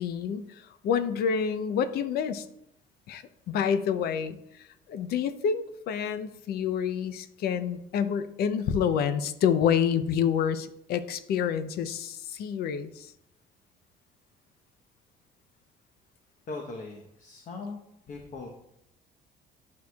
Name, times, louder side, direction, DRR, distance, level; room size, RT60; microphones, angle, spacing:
voice 1, 0.0-2.5 3.1-13.1, left 7 dB, 70° left, 12 dB, 0.6 m, -28 dB
voice 2, 16.5-17.8 18.1-18.5, left 3 dB, 50° left, 1 dB, 1.0 m, -39 dB
11.5 x 4.7 x 2.3 m, 0.80 s
cardioid pair, 110°, 17 cm